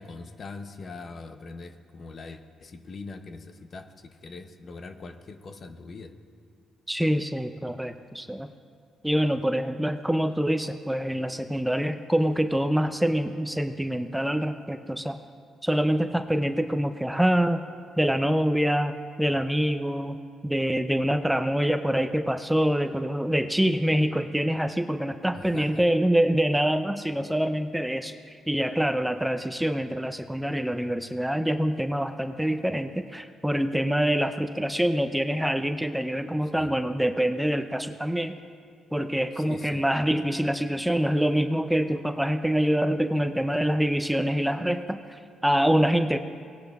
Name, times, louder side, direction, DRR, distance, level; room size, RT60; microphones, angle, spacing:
voice 1, 0.0-6.1 25.3-25.8 36.6-36.7 39.4-39.8, left 3 dB, 45° left, 7 dB, 0.7 m, -42 dB
voice 2, 6.9-8.5 9.0-15.2 15.6-17.6 18.0-18.9 19.2-20.2 20.4-38.3 38.9-46.2, equal, 5° right, 8 dB, 0.4 m, -25 dB
18.5 x 10.0 x 2.4 m, 2.2 s
cardioid pair, 90°, 0 cm